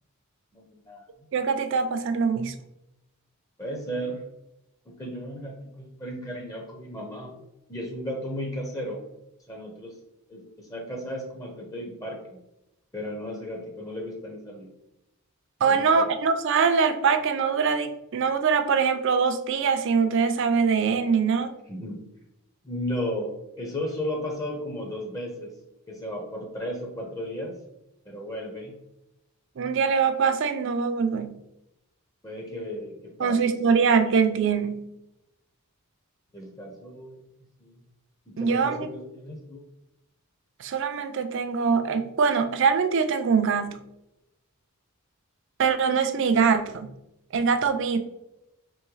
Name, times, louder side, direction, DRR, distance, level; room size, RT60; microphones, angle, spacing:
voice 1, 0.5-1.0 3.6-4.2 4.9-7.3 7.7-9.1 9.5-10.0 10.3-12.4 12.9-14.7 15.6-16.1 21.7-22.1 22.6-25.5 25.9-27.6 28.1-28.7 32.2-33.8 36.3-37.2 37.6-37.7 38.3-39.6, equal, 15° left, 1 dB, 0.6 m, -35 dB
voice 2, 1.3-2.5 15.6-21.5 29.6-31.4 33.2-34.9 38.4-38.9 40.6-43.8 45.6-46.9 47.3-48.0, right 5 dB, 55° right, 9 dB, 0.4 m, -23 dB
3.5 x 3.1 x 3.1 m, 0.88 s
head